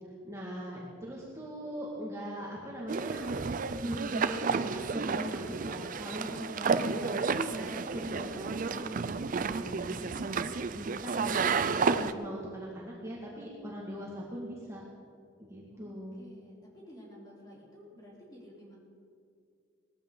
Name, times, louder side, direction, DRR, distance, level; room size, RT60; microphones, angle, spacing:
voice 1, 0.2-3.3 3.8-9.0 9.3-10.3 10.8-14.8 15.4-16.2, equal, 15° right, -5 dB, 2.0 m, -40 dB
sound 1, 2.9-12.1, right 5 dB, 45° right, 0.5 m, -31 dB
voice 2, 15.7-18.8, equal, 20° left, -5 dB, 3.9 m, -53 dB
19.5 x 14.0 x 3.9 m, 2.3 s
head